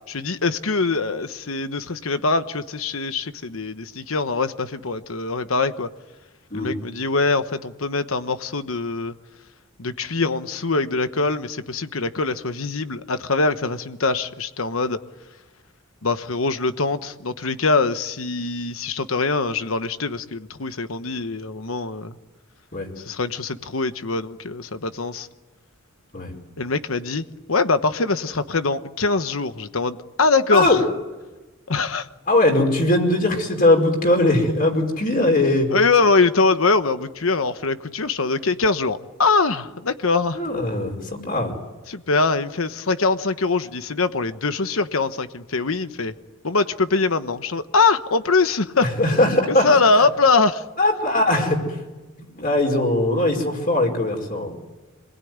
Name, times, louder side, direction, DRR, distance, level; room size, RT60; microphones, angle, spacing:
voice 1, 0.1-5.9 6.5-9.1 9.8-15.0 16.0-22.2 23.0-25.3 26.6-30.8 31.7-32.1 35.7-40.4 41.9-46.1 46.4-48.8 49.5-50.6, left 3 dB, 80° left, 10 dB, 1.2 m, -23 dB
voice 2, 32.3-35.7 40.3-41.5 49.0-49.7 50.8-51.8 52.3-54.5, left 1 dB, 45° left, 2 dB, 4.9 m, -20 dB
27.0 x 21.0 x 9.6 m, 1.2 s
head